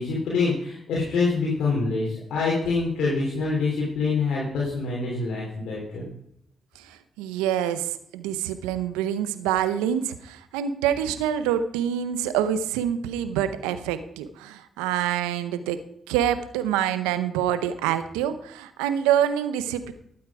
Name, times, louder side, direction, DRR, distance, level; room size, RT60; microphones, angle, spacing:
voice 1, 0.0-6.1, left 4 dB, 75° left, -5 dB, 3.1 m, -25 dB
voice 2, 7.2-7.9 8.1-15.8 16.1-19.9, right 10 dB, 90° right, 12 dB, 0.7 m, -26 dB
12.0 x 8.7 x 4.8 m, 0.72 s
hypercardioid pair, 45°, 0 cm